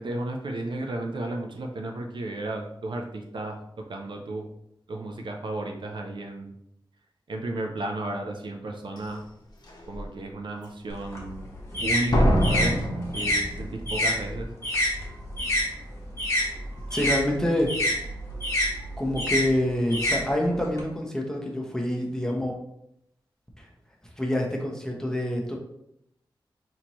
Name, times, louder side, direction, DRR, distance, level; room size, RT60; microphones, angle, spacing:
voice 1, 0.0-4.5 4.9-6.5 7.3-9.2 9.9-11.5 11.8-12.8 13.1-14.5, right 2 dB, 70° right, 2 dB, 0.5 m, -33 dB
Slam, 9.0-9.1 9.7-10.0 12.1-14.0 14.3-14.4, equal, 50° left, 0.9 m, -24 dB
sound 1, 10.9-15.7 16.0-20.8, left 1 dB, 30° left, 1.3 m, -28 dB
voice 2, 16.9-18.0 19.0-22.5 23.6-23.7 24.2-25.6, left 1 dB, 5° left, -1 dB, 0.8 m, -27 dB
4.3 x 2.8 x 3.0 m, 0.78 s
wide cardioid pair, 80°, 9 cm